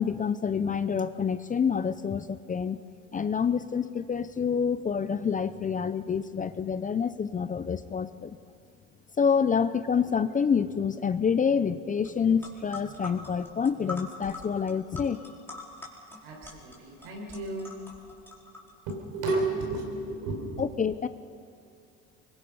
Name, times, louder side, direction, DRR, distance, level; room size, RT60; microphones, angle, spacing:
voice 1, 0.0-2.8 3.1-8.4 9.2-15.2 20.6-21.1, left 6 dB, 25° left, 13 dB, 0.6 m, -27 dB
sound 1, 12.0-12.1 12.4-18.9, left 3 dB, 5° left, 4.4 m, -44 dB
voice 2, 16.2-17.7 18.9-20.7, right 2 dB, 80° right, 0 dB, 6.0 m, -32 dB
25.0 x 22.0 x 5.6 m, 2.5 s
supercardioid pair, 95°, 35 cm